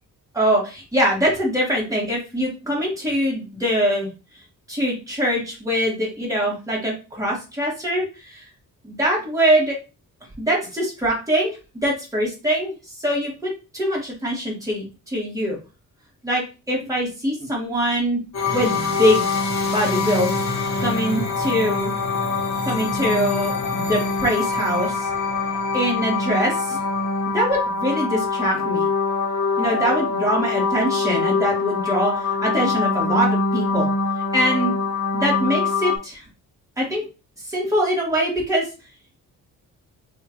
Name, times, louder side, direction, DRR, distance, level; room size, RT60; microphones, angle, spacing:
voice 1, 0.3-4.1 4.7-8.5 8.8-9.8 10.4-15.6 16.2-18.2 18.5-19.3 19.6-20.3 20.8-22.0 22.6-25.1 25.7-26.8 27.3-28.9 29.6-33.9 34.3-34.8 35.2-36.2 36.8-37.1 37.5-38.7, equal, 10° right, -4 dB, 1.8 m, -23 dB
sound 1, 18.3-36.0, left 4 dB, 50° left, 1.1 m, -24 dB
3.5 x 2.5 x 4.3 m, 0.31 s
wide cardioid pair, 160°, 34 cm